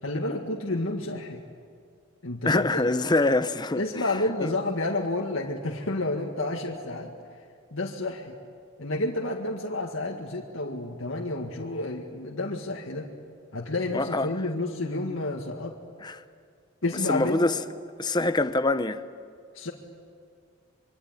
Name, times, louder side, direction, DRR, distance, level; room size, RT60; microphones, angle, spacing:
voice 1, 0.0-1.4 2.2-2.8 3.8-7.1 7.7-8.4 8.8-13.1 13.5-15.8 16.8-17.5 19.5-19.7, left 2 dB, 65° left, 2.0 m, -30 dB
voice 2, 2.4-3.8 4.4-4.5 13.9-14.3 16.0-16.1 17.1-17.6 18.0-19.0, left 2 dB, 20° left, 0.8 m, -24 dB
25.5 x 24.5 x 9.2 m
head